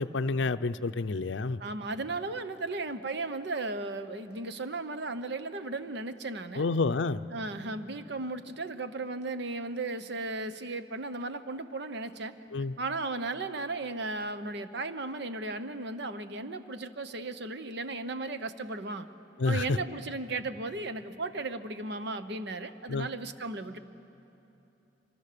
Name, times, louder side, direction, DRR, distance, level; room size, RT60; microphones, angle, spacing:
voice 1, 0.0-1.6 6.6-7.2 12.5-12.7 19.4-19.8 22.9-23.1, left 3 dB, 70° left, 12 dB, 0.6 m, -29 dB
voice 2, 1.6-6.6 7.3-12.3 12.8-19.1 19.4-23.8, right 3 dB, 60° right, 10 dB, 1.0 m, -35 dB
26.0 x 25.0 x 6.8 m, 2.9 s
head